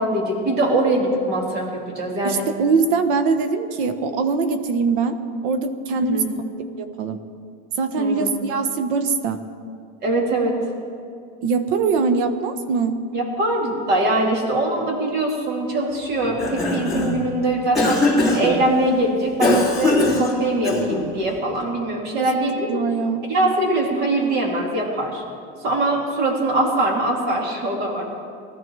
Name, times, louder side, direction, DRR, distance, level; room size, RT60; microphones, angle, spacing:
voice 1, 0.0-2.5 6.0-6.4 8.0-8.3 10.0-10.5 13.1-22.8 23.2-25.2 25.6-28.1, right 2 dB, 35° right, 1 dB, 2.6 m, -22 dB
voice 2, 2.2-5.2 5.4-6.2 6.8-7.2 7.8-9.4 11.4-13.0 22.1-22.3 22.7-23.3, right 4 dB, 60° right, 9 dB, 1.2 m, -22 dB
Cough, 16.2-17.2 17.8-18.6 19.4-21.1, left 2 dB, ahead, 3.2 m, -21 dB
20.0 x 14.0 x 4.7 m, 2.3 s
cardioid pair, 170°, 30 cm